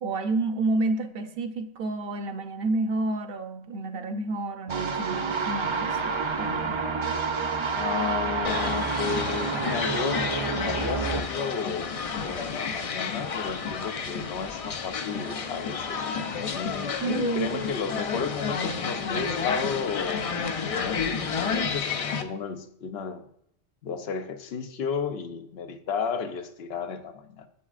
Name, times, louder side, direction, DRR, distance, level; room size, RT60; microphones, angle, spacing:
voice 1, 0.0-6.1 6.4-6.8 17.0-17.6, right 3 dB, 65° right, 8 dB, 0.9 m, -30 dB
sound 1, 4.7-11.2, right 4 dB, 40° right, 0.4 m, -29 dB
voice 2, 7.7-11.9 12.2-16.9 17.3-23.2 23.8-27.5, left 6 dB, 75° left, 9 dB, 0.9 m, -33 dB
sound 2, 8.4-22.2, left 5 dB, 50° left, 0.4 m, -31 dB
8.2 x 7.1 x 2.4 m, 0.72 s
omnidirectional pair, 1.0 m